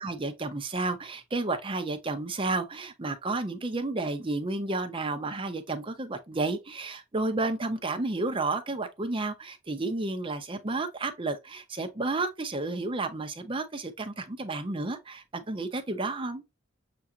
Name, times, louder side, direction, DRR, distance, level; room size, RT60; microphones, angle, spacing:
voice 1, 0.0-16.4, right 2 dB, 25° right, 0.7 m, -31 dB
6.8 x 2.5 x 2.7 m
head